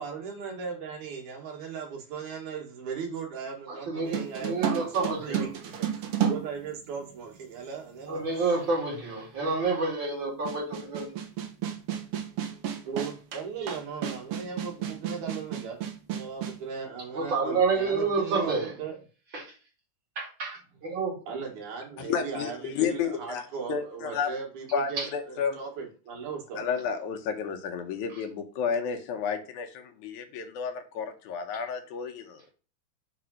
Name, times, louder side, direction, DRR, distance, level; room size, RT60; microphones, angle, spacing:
voice 1, 0.0-8.5 12.8-15.8 16.1-19.0 21.3-26.7, right 6 dB, 80° right, 1 dB, 3.1 m, -38 dB
voice 2, 3.7-5.4 8.1-11.1 17.1-18.7 19.3-19.5 20.2-21.2 25.0-25.1, right 4 dB, 40° right, -2 dB, 3.1 m, -29 dB
sound 1, 4.1-7.3 8.2-8.3 10.5-16.6, right 9 dB, 60° right, 1.6 m, -32 dB
voice 3, 22.0-23.4 23.7-24.3 24.7-25.6 26.6-32.4, left 6 dB, 80° left, 5 dB, 2.3 m, -31 dB
6.0 x 3.8 x 6.2 m, 0.36 s
omnidirectional pair, 3.4 m